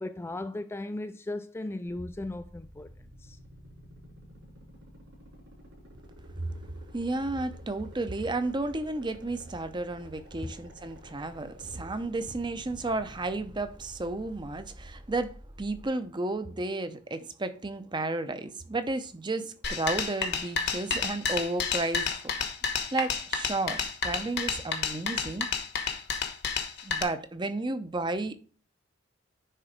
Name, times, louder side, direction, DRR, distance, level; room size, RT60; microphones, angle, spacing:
voice 1, 0.0-2.9 3.2-3.4 10.4-10.5, left 2 dB, 15° left, 0.3 m, -36 dB
sound 1, 1.9-15.9, equal, 70° right, 5.0 m, -50 dB
voice 2, 6.9-22.1 22.9-25.5 26.8-28.4, right 2 dB, 25° right, 0.7 m, -32 dB
sound 2, 19.6-27.0, left 5 dB, 60° left, 1.2 m, -30 dB
10.0 x 3.9 x 5.1 m
head